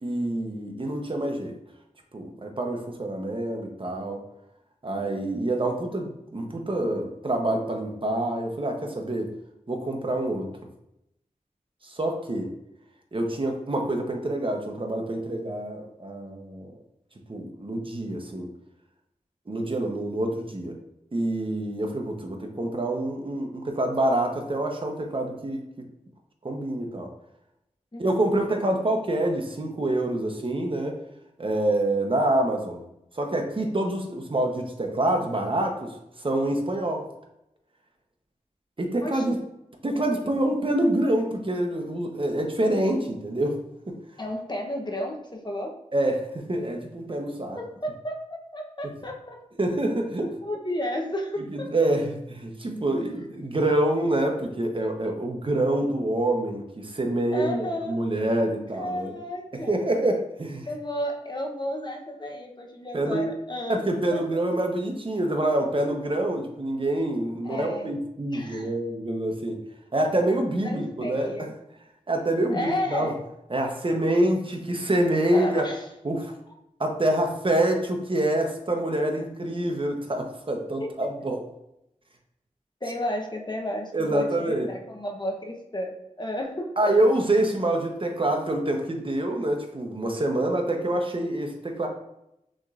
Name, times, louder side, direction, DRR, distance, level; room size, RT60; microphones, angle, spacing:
voice 1, 0.0-1.6 2.1-4.2 4.8-9.3 9.7-10.5 11.8-12.5 13.1-16.7 17.3-18.5 19.5-20.8 21.1-25.8 26.4-27.1 28.0-31.0 31.4-32.8 33.1-37.0 38.8-39.4 39.8-43.5 43.9-44.0 45.9-47.6 49.6-50.3 51.5-59.2 59.5-60.7 62.9-63.3 63.7-69.6 69.9-71.3 72.1-73.1 73.5-75.7 76.0-76.3 76.8-81.4 83.9-84.7 86.8-91.9, right 1 dB, 40° right, 3 dB, 0.8 m, -26 dB
voice 2, 39.0-39.4 44.2-45.7 47.6-48.3 48.5-49.4 50.2-51.7 57.3-58.1 58.7-59.8 60.7-63.8 64.1-64.2 67.4-67.9 68.3-68.7 70.6-71.5 72.5-73.2 75.3-75.9 80.8-80.9 82.8-86.9, left 1 dB, 35° left, 1 dB, 0.8 m, -32 dB
6.2 x 3.1 x 2.5 m, 0.83 s
wide cardioid pair, 50°, 13 cm